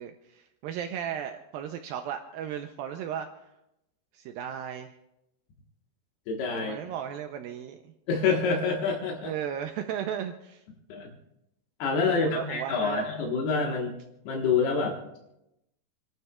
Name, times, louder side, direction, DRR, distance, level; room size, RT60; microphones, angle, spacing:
voice 1, 0.0-3.3 4.1-4.9 6.6-7.9 9.2-10.6 12.1-13.1, right 9 dB, 80° right, 6 dB, 2.3 m, -35 dB
voice 2, 6.3-6.8 8.1-9.3 10.9-11.1 11.8-13.9 14.3-15.0, left 4 dB, 80° left, 0 dB, 3.5 m, -27 dB
29.0 x 12.0 x 2.4 m, 0.86 s
omnidirectional pair, 4.5 m